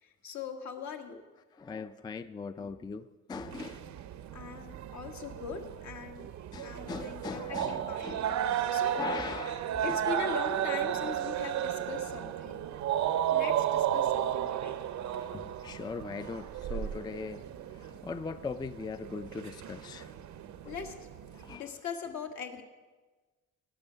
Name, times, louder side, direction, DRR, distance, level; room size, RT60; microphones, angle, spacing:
voice 1, 0.0-1.2 4.3-6.3 6.6-8.1 8.7-9.0 9.8-12.7 13.3-14.8 20.7-20.9 21.3-22.6, left 6 dB, 65° left, 1.5 m, -41 dB
voice 2, 1.5-3.9 6.5-8.7 9.0-10.0 15.2-17.4 17.7-20.1 20.6-20.7 21.3-21.7, left 5 dB, 15° left, 0.3 m, -40 dB
sound 1, 3.4-21.6, right 10 dB, 70° right, 0.7 m, -34 dB
17.5 x 6.2 x 5.6 m
cardioid pair, 90°, 30 cm